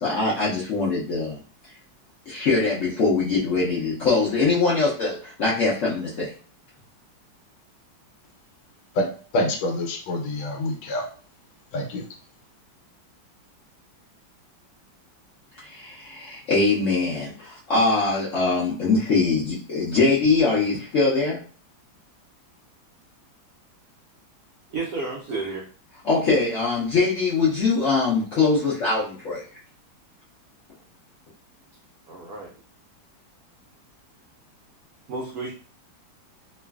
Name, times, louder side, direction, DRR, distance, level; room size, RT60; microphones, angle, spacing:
voice 1, 0.0-1.4 2.3-6.3 15.6-21.4 26.0-29.4, left 3 dB, 70° left, -7 dB, 0.7 m, -22 dB
voice 2, 9.3-11.0 11.7-12.1, left 1 dB, 85° left, 4 dB, 1.4 m, -26 dB
voice 3, 24.7-25.7 32.1-32.5 35.1-35.5, right 3 dB, 80° right, -2 dB, 0.8 m, -31 dB
3.0 x 2.4 x 2.3 m, 0.41 s
omnidirectional pair, 2.1 m